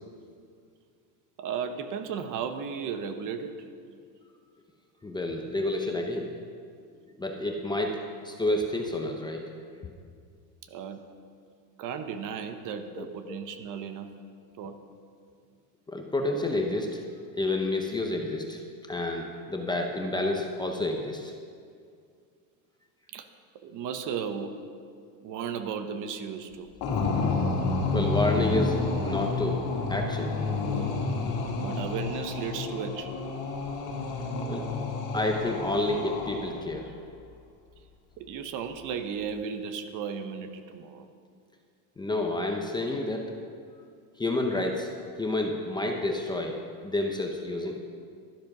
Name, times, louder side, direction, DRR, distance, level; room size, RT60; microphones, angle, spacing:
voice 1, 1.4-3.5 10.7-11.0 11.8-14.1 14.6-14.8 23.1-23.3 23.6-24.6 25.2-26.7 31.6-33.2 38.2-41.1, right 7 dB, 40° right, 8 dB, 1.0 m, -35 dB
voice 2, 5.0-6.3 7.2-9.5 13.0-13.4 15.9-17.0 17.3-18.6 18.9-21.3 27.9-30.4 34.5-34.7 35.1-36.9 42.0-43.3 44.2-44.9 45.2-47.8, left 2 dB, 10° left, 2 dB, 0.7 m, -29 dB
sound 1, 26.8-36.7, left 3 dB, 50° left, 2.3 m, -30 dB
12.0 x 10.0 x 6.0 m, 2.2 s
supercardioid pair, 145°, 46 cm